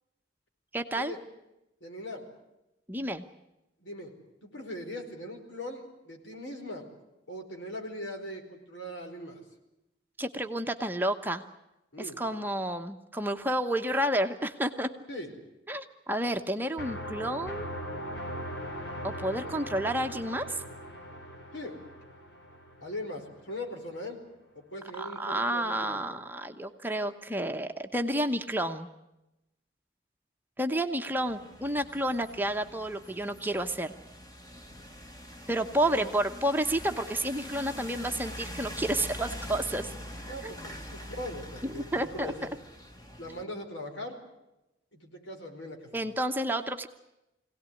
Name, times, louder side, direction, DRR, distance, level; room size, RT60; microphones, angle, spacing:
voice 1, 0.7-1.1 2.9-3.2 10.2-11.4 12.0-14.9 15.7-17.7 19.0-20.6 25.0-28.9 30.6-33.9 35.5-39.9 40.4-40.6 41.6-42.3 45.9-46.9, right 1 dB, 10° right, 5 dB, 0.9 m, -30 dB
voice 2, 1.8-2.2 3.8-4.2 4.4-6.9 7.3-9.4 11.9-12.2 15.1-15.3 21.5-21.8 22.8-24.2 24.5-26.1 35.9-36.1 40.3-42.5 43.2-44.2 44.9-46.0, left 1 dB, 85° left, 3 dB, 4.8 m, -40 dB
sound 1, 16.8-23.5, equal, 70° left, 2.9 m, -40 dB
sound 2, 31.2-43.4, equal, 20° left, 1.6 m, -44 dB
23.5 x 17.5 x 9.8 m, 0.92 s
head